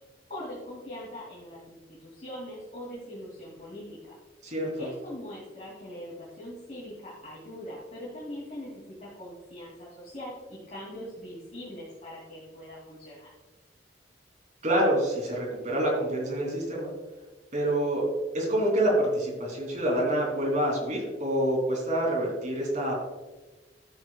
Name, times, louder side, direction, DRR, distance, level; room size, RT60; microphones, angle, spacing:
voice 1, 0.3-4.1 4.8-13.3, left 1 dB, 40° left, -7 dB, 2.7 m, -41 dB
voice 2, 4.4-4.9 14.6-16.9 17.5-18.0 18.3-22.9, right 1 dB, 45° right, -2 dB, 3.0 m, -27 dB
13.0 x 8.0 x 2.3 m, 1.2 s
head